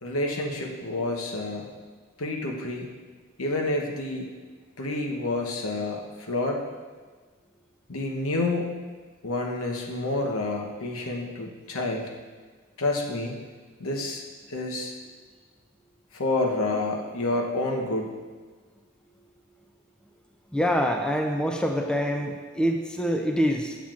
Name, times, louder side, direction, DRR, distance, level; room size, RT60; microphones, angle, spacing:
voice 1, 0.0-1.7 2.2-2.9 3.4-4.3 4.8-6.6 7.9-8.7 9.2-12.1 12.8-13.4 13.8-14.2 14.5-14.9 16.1-18.1, left 2 dB, 80° left, 1 dB, 0.9 m, -29 dB
voice 2, 20.5-23.8, equal, 5° left, 3 dB, 0.4 m, -25 dB
7.3 x 7.1 x 2.4 m, 1.4 s
head